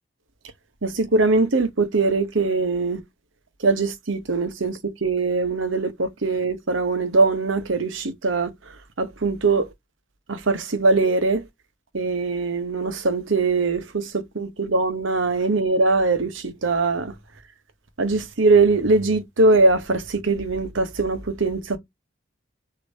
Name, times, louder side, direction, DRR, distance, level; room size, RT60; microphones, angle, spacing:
voice 1, 0.8-3.0 3.6-8.5 9.0-9.7 10.3-11.4 11.9-17.1 18.0-21.8, right 3 dB, 85° right, 1.0 m, -21 dB
6.5 x 2.9 x 2.7 m
head